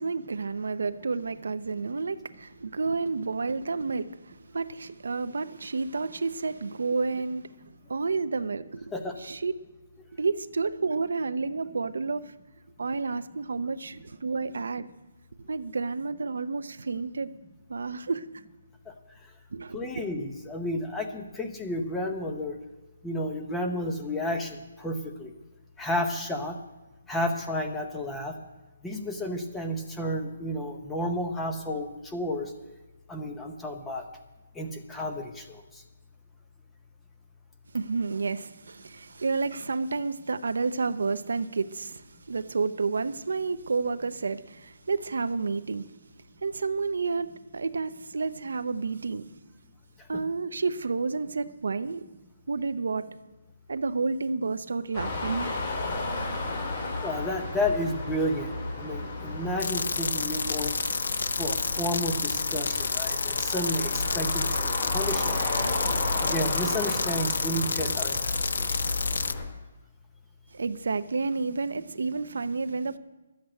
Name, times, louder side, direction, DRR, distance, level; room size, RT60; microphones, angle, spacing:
voice 1, 0.0-7.5 7.9-8.9 9.2-9.5 10.1-12.3 12.8-14.9 15.4-17.3 17.7-18.3 19.5-20.0 37.7-45.9 46.4-49.3 50.1-52.1 52.5-53.1 53.7-55.6 70.5-73.0, right 4 dB, 75° right, 0.7 m, -30 dB
voice 2, 19.7-22.6 23.0-25.3 25.8-26.5 27.1-28.4 28.8-32.5 33.1-34.0 34.5-35.8 57.0-60.8 61.4-65.5 66.2-68.8, left 1 dB, 5° left, 0.7 m, -32 dB
sound 1, 54.9-69.4, left 2 dB, 30° left, 2.6 m, -33 dB
sound 2, 59.6-69.3, left 4 dB, 60° left, 0.6 m, -30 dB
12.5 x 8.1 x 8.8 m
hypercardioid pair, 175°, 0 cm